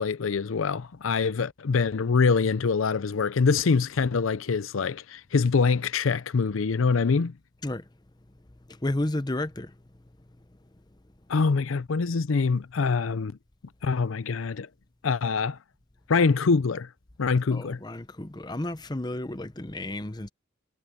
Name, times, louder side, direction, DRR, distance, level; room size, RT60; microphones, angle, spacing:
voice 1, 0.0-7.3 11.3-13.3 13.8-14.7 15.0-15.6 16.1-16.9 17.2-17.8, left 4 dB, 85° left, 0.5 m, -24 dB
voice 2, 8.7-9.7 17.5-20.3, left 1 dB, 20° left, 0.8 m, -32 dB
head